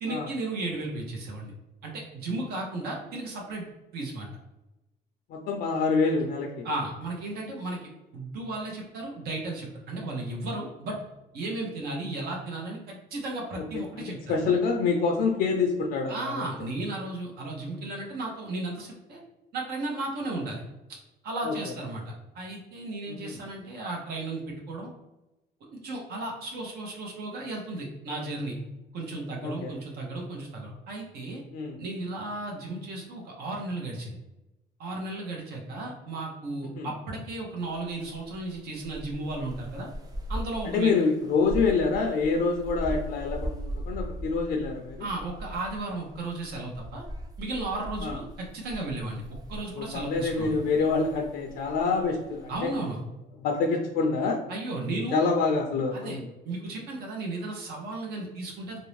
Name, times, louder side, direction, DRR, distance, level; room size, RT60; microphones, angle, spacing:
voice 1, 0.0-1.5 1.8-4.3 6.6-11.0 11.3-14.4 16.1-19.2 19.5-20.6 21.2-24.9 25.7-28.6 28.9-31.4 31.8-34.2 34.8-39.9 40.3-40.9 45.0-47.0 47.4-49.2 49.5-50.6 52.5-53.0 54.5-55.3 55.9-58.8, right 2 dB, 70° right, -1 dB, 0.7 m, -34 dB
voice 2, 5.3-6.7 13.6-13.7 14.0-16.5 21.4-21.5 23.1-23.4 29.4-29.7 31.5-31.8 36.8-36.9 40.6-45.1 48.0-48.2 49.7-52.7 53.4-54.4 55.1-56.2, left 4 dB, 65° left, 2 dB, 0.4 m, -26 dB
sound 1, 37.6-53.0, equal, 20° right, 0.4 m, -40 dB
2.5 x 2.0 x 3.1 m, 0.99 s
cardioid pair, 110°, 17 cm